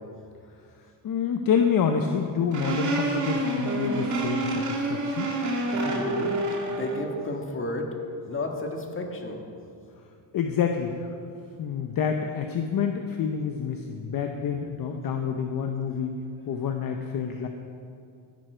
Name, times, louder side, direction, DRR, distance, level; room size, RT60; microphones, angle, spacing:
voice 1, 1.0-5.3 10.3-11.1 11.6-16.1 16.5-17.5, left 7 dB, 45° left, 4 dB, 0.9 m, -27 dB
sound 1, 2.5-7.1, right 2 dB, 35° right, 2.3 m, -28 dB
voice 2, 5.7-6.4 6.7-7.9 8.3-9.4, left 2 dB, 25° left, 2 dB, 1.7 m, -32 dB
14.5 x 11.5 x 4.5 m, 2.4 s
cardioid pair, 120°, 48 cm